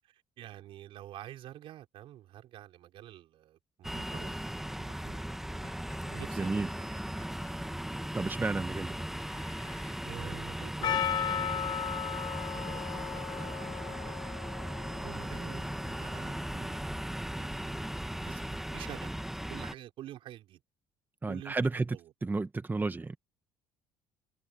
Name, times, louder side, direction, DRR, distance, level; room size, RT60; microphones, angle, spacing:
voice 1, 0.1-5.2 5.5-5.7 6.0-7.5 8.1-8.3 10.0-14.4 15.0-17.7 18.1-20.6 21.3-21.6 21.9-22.1, right 13 dB, 65° right, 4.8 m, -49 dB
sound 1, 3.8-19.7, equal, 5° right, 1.7 m, -38 dB
Screech, 5.6-7.6 9.2-10.1 10.7-12.9, left 4 dB, 30° left, 7.9 m, -57 dB
voice 2, 6.4-6.7 8.1-9.0 21.2-23.2, right 3 dB, 20° right, 1.3 m, -32 dB
Percussion, 10.8-15.8, left 9 dB, 50° left, 1.0 m, -35 dB
hypercardioid pair, 65°, 10 cm